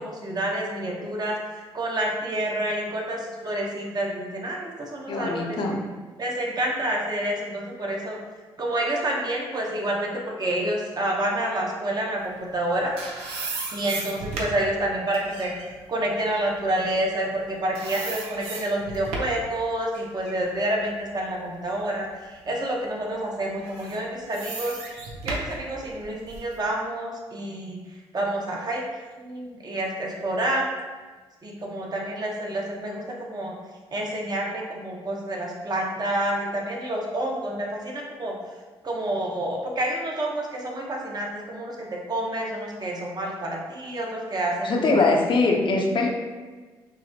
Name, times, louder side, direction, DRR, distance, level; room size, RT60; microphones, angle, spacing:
voice 1, 0.0-5.6 6.2-8.2 8.6-12.9 13.7-15.5 15.9-24.8 25.2-27.8 28.1-28.8 29.2-30.7 31.4-33.6 33.9-38.3 38.8-41.8 42.1-45.0, right 1 dB, 40° right, -1 dB, 1.0 m, -28 dB
voice 2, 5.1-5.8 44.6-46.1, left 3 dB, 50° left, 1 dB, 0.8 m, -22 dB
sound 1, 12.5-17.4 17.7-19.5 19.9-21.9 22.4-22.5 23.5-26.5, right 3 dB, 80° right, 0.7 m, -36 dB
6.0 x 2.1 x 2.9 m, 1.3 s
supercardioid pair, 60°, 11 cm